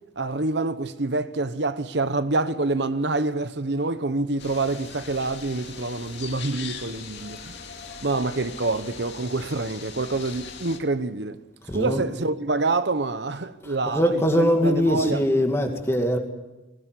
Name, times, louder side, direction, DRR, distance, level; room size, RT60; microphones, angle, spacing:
voice 1, 0.2-7.6 8.0-11.4 11.7-15.2, right 3 dB, 65° right, 0.9 m, -26 dB
sound 1, 4.4-10.8, left 6 dB, 65° left, 2.4 m, -40 dB
voice 2, 11.7-12.0 13.6-16.2, equal, 15° left, 2.3 m, -22 dB
20.5 x 17.5 x 9.7 m
head